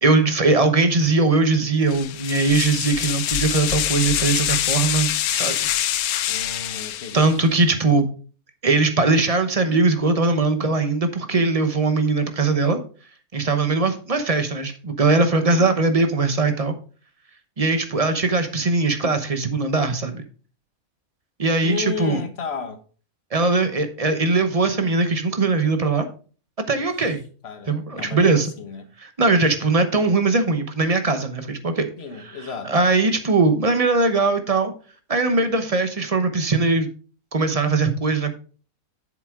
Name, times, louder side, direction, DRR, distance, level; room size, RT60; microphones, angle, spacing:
voice 1, 0.0-5.7 7.1-8.1 8.6-12.8 13.3-16.8 17.6-20.3 21.4-22.2 23.3-26.1 26.7-27.2 27.7-28.5 29.0-31.9 32.4-34.7 35.1-36.9 37.3-38.3, right 3 dB, 30° right, 0.9 m, -20 dB
sound 1, 1.9-7.5, left 12 dB, 85° left, 1.1 m, -25 dB
voice 2, 6.3-7.3 15.3-15.8 21.6-22.8 26.7-26.8 27.4-28.9 32.0-32.7, left 6 dB, 50° left, 1.2 m, -33 dB
8.0 x 7.2 x 3.7 m
omnidirectional pair, 1.5 m